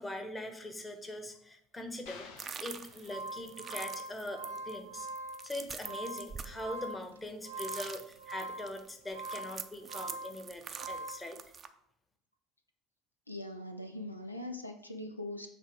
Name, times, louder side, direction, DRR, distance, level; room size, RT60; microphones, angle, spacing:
voice 1, 0.0-2.3 2.6-5.1 5.4-11.4, left 1 dB, 15° left, 6 dB, 1.1 m, -42 dB
sound 1, 2.1-3.8, left 5 dB, 60° left, 0.8 m, -53 dB
sound 2, 2.4-7.3 7.5-11.7, right 6 dB, 30° right, 0.6 m, -45 dB
sound 3, 2.8-11.3, right 2 dB, 75° right, 0.5 m, -43 dB
voice 2, 13.3-15.5, left 1 dB, 85° left, 6 dB, 0.5 m, -41 dB
7.2 x 3.3 x 4.9 m, 0.72 s
figure-of-eight pair, 65°, 0 cm